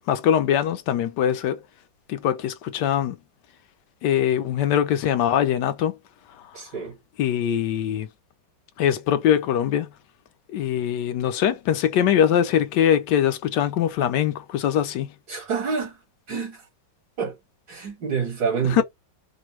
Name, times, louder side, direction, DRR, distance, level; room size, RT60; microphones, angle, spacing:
voice 1, 0.1-1.6 2.1-3.2 4.0-6.0 6.5-6.6 7.2-8.1 8.8-9.9 10.5-15.1 18.7-18.8, left 9 dB, 75° left, 1.1 m, -22 dB
voice 2, 6.5-7.0 15.3-16.0 16.3-16.7 17.2-17.4 17.7-18.8, right 6 dB, 70° right, 2.8 m, -27 dB
4.9 x 2.2 x 3.0 m
omnidirectional pair, 2.0 m